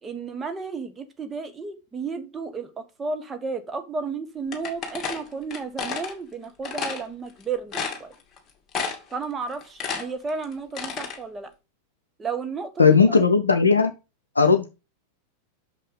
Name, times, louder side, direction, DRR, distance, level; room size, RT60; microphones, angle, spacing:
voice 1, 0.0-8.1 9.1-11.5 12.2-13.0 14.4-14.6, right 4 dB, 15° right, 1.3 m, -33 dB
sound 1, 4.5-6.1 6.6-7.0 7.4-7.5 7.7-8.4 8.7-9.2 9.5-11.2, left 5 dB, 20° left, 2.2 m, -31 dB
voice 2, 12.8-13.9 14.4-14.7, left 5 dB, 75° left, 0.7 m, -17 dB
6.1 x 5.5 x 5.3 m
figure-of-eight pair, 90°, 0 cm